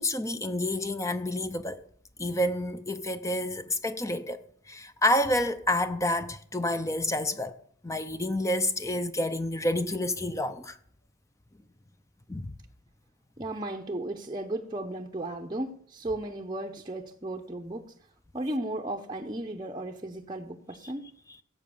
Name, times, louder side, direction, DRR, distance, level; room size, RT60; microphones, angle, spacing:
voice 1, 0.0-1.8 2.2-7.6 7.8-10.8 12.3-12.5, left 1 dB, 15° left, 0.5 m, -29 dB
voice 2, 13.4-18.0 18.3-21.1, right 1 dB, 20° right, 0.7 m, -35 dB
16.5 x 7.5 x 7.0 m
head